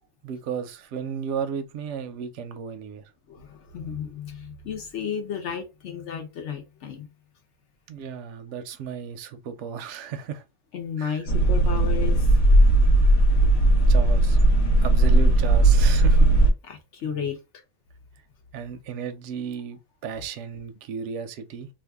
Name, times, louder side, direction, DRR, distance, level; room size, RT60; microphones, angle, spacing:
voice 1, 0.2-3.0 7.9-10.4 11.0-11.2 13.9-14.4 14.8-16.3 17.1-17.2 18.5-21.7, right 7 dB, 65° right, 0.8 m, -34 dB
voice 2, 3.3-7.1 10.7-12.3 16.6-17.4, left 7 dB, 60° left, 0.9 m, -33 dB
sound 1, 11.3-16.5, right 2 dB, 85° left, 1.3 m, -17 dB
2.6 x 2.4 x 3.4 m
omnidirectional pair, 1.5 m